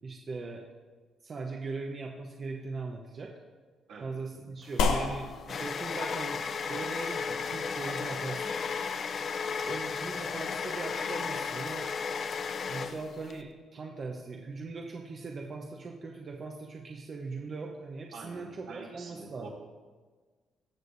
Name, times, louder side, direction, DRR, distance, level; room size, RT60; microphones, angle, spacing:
voice 1, 0.0-0.6 1.2-3.3 4.0-8.6 9.6-11.9 12.7-19.5, right 3 dB, 45° right, 0 dB, 0.9 m, -40 dB
voice 2, 3.9-4.2 9.6-9.8 18.1-19.5, right 4 dB, 85° right, -4 dB, 2.8 m, -46 dB
sound 1, 4.7-13.4, left 5 dB, 50° left, 0.5 m, -34 dB
sound 2, 4.8-13.5, left 4 dB, 90° left, 0.8 m, -37 dB
19.5 x 6.6 x 2.7 m, 1.4 s
cardioid pair, 90°, 0 cm